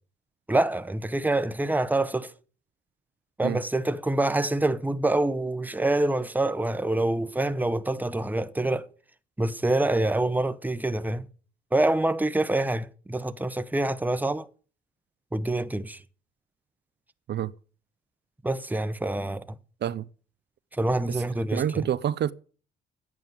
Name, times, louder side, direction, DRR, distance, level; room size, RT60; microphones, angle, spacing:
voice 1, 0.5-2.3 3.4-8.9 9.4-11.3 11.7-14.5 15.3-16.0 18.4-19.4 20.7-21.9, right 2 dB, 10° right, 1.0 m, -26 dB
voice 2, 21.5-22.3, right 10 dB, 60° right, 0.7 m, -27 dB
10.5 x 9.1 x 9.7 m
cardioid pair, 90°, 20 cm